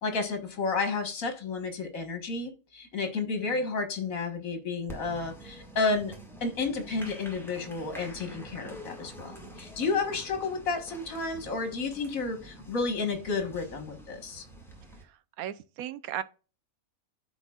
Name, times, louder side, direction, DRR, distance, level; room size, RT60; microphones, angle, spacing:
voice 1, 0.0-6.1 6.4-14.4, left 4 dB, 65° left, 1.9 m, -31 dB
Applause, 4.9-15.0, right 1 dB, ahead, 1.8 m, -47 dB
voice 2, 15.0-16.2, right 11 dB, 75° right, 1.1 m, -37 dB
13.0 x 4.5 x 2.4 m
omnidirectional pair, 1.5 m